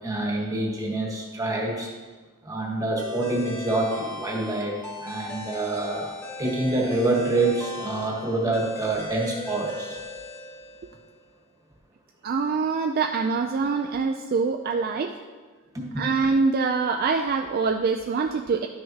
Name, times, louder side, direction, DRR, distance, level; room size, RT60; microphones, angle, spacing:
voice 1, 0.0-1.9 2.4-6.1 6.4-10.0 15.7-16.1, right 2 dB, 15° right, -1 dB, 1.3 m, -26 dB
sound 1, 3.0-11.1, left 3 dB, 10° left, 1.2 m, -38 dB
voice 2, 12.2-15.2 16.0-18.7, right 4 dB, 45° right, 4 dB, 0.3 m, -24 dB
11.0 x 6.5 x 2.8 m, 1.4 s
head